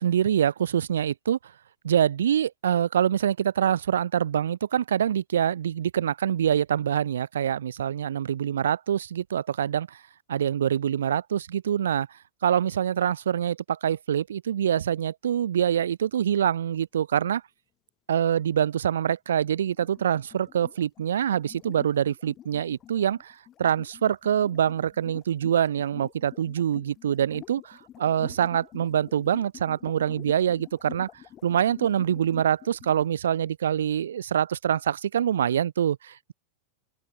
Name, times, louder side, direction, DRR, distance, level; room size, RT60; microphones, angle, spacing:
voice 1, 0.0-1.4 1.8-10.0 10.3-12.1 12.4-17.4 18.1-31.1 31.4-36.3, right 9 dB, 65° right, 2.8 m, -25 dB
sound 1, 19.7-33.1, left 11 dB, 30° left, 7.9 m, -47 dB
open air
figure-of-eight pair, 90°, 0 cm